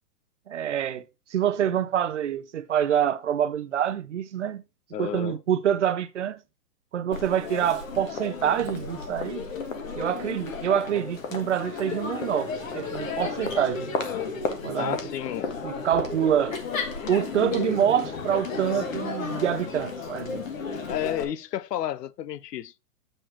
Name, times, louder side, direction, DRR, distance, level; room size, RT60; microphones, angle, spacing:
voice 1, 0.5-1.1 1.3-4.6 5.0-6.4 6.9-9.5 10.0-13.9 14.6-15.0 15.6-16.6 17.1-20.4, right 9 dB, 50° right, 0.6 m, -26 dB
voice 2, 4.9-5.4 14.8-15.5 20.9-22.8, left 11 dB, 85° left, 0.7 m, -31 dB
Crowd, 7.1-21.2, left 5 dB, 55° left, 1.6 m, -33 dB
sound 1, 8.4-9.8 11.3-14.4, right 3 dB, 10° right, 0.7 m, -54 dB
7.6 x 6.6 x 2.9 m
hypercardioid pair, 180°, 47 cm